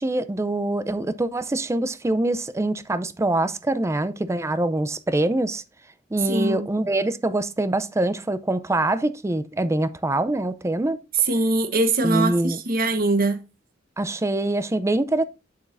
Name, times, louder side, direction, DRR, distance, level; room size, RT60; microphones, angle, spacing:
voice 1, 0.0-5.6 6.1-11.0 12.0-12.6 14.0-15.2, right 2 dB, 15° right, 0.4 m, -24 dB
voice 2, 6.3-6.7 11.3-13.4, right 2 dB, 50° right, 1.1 m, -22 dB
8.2 x 7.2 x 2.5 m
head